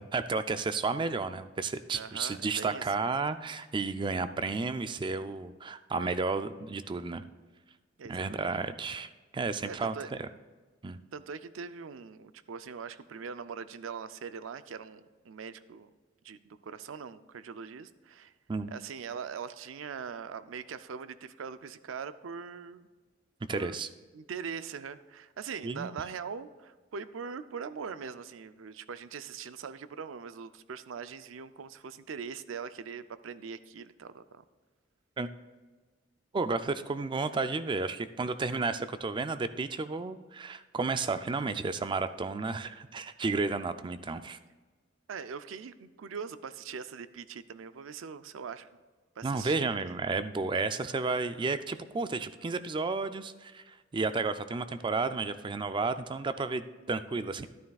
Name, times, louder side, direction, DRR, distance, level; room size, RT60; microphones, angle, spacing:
voice 1, 0.0-7.2 8.1-10.3 10.8-11.0 18.5-18.7 23.5-23.9 25.6-25.9 35.2-35.3 36.3-44.4 49.2-57.5, right 4 dB, 25° right, 11 dB, 0.4 m, -32 dB
voice 2, 1.9-3.1 8.0-8.6 9.7-10.1 11.1-15.9 16.2-18.3 18.7-22.9 23.5-23.8 24.1-34.4 45.1-48.7 49.2-50.0 51.3-51.6 56.8-56.9, right 6 dB, 85° right, 13 dB, 0.4 m, -42 dB
12.5 x 11.0 x 2.3 m, 1.3 s
head